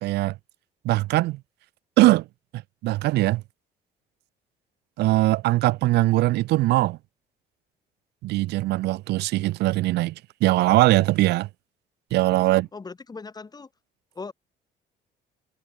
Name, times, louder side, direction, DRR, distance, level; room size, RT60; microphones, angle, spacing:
voice 1, 0.0-0.4 0.8-1.4 2.0-2.2 2.8-3.4 5.0-7.0 8.2-11.5 12.1-12.7, right 18 dB, 80° right, 1.5 m, -21 dB
voice 2, 12.2-13.7 14.1-14.3, left 4 dB, 25° left, 3.9 m, -40 dB
cardioid pair, 110°, 17 cm